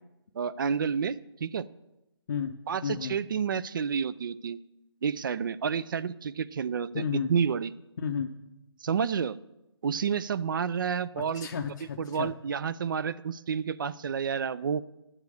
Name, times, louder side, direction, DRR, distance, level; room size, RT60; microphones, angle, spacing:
voice 1, 0.3-1.6 2.7-4.6 5.0-7.7 8.8-9.4 9.8-11.5 12.0-14.8, right 6 dB, 50° right, 17 dB, 0.4 m, -30 dB
voice 2, 2.3-3.2 6.9-7.3 8.0-8.3 11.2-12.3, left 7 dB, 45° left, 2 dB, 0.6 m, -33 dB
10.5 x 7.4 x 6.4 m, 0.93 s
hypercardioid pair, 160°, 14 cm